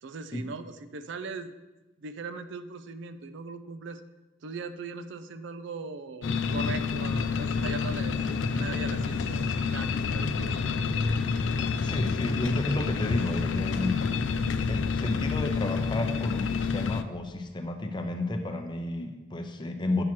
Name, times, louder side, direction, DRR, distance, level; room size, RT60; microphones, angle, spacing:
voice 1, 0.0-1.5 2.0-4.0 4.4-11.1 12.3-12.4, right 4 dB, 65° right, 10 dB, 0.4 m, -40 dB
sound 1, 6.2-17.0, left 5 dB, 70° left, 0.4 m, -28 dB
voice 2, 11.8-14.1 14.7-20.0, left 1 dB, 25° left, 5 dB, 0.6 m, -32 dB
8.6 x 3.0 x 6.0 m, 1.1 s
head